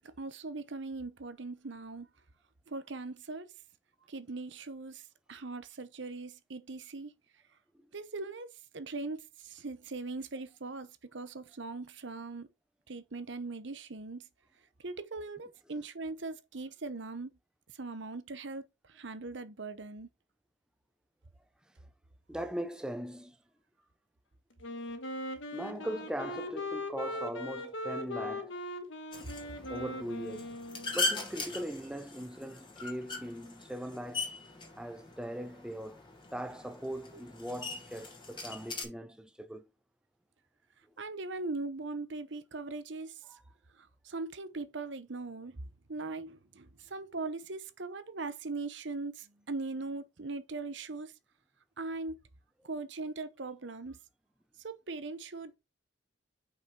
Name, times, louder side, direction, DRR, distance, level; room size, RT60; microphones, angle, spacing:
voice 1, 0.0-2.1 2.7-3.5 4.1-7.1 7.9-12.5 12.9-14.3 14.8-17.3 17.7-20.1 41.0-43.2 43.7-45.6 45.9-51.1 51.8-52.2 52.6-54.0 54.6-55.5, right 3 dB, 65° right, 0.9 m, -40 dB
voice 2, 22.3-23.3 25.5-28.6 29.7-30.5 30.9-34.3 34.8-36.0 36.3-39.6 43.3-43.4, equal, 5° right, 0.7 m, -40 dB
Wind instrument woodwind instrument, 24.6-31.3, left 1 dB, 75° left, 1.4 m, -40 dB
sound 1, 29.1-38.8, left 3 dB, 25° left, 2.2 m, -40 dB
5.7 x 5.7 x 4.8 m
head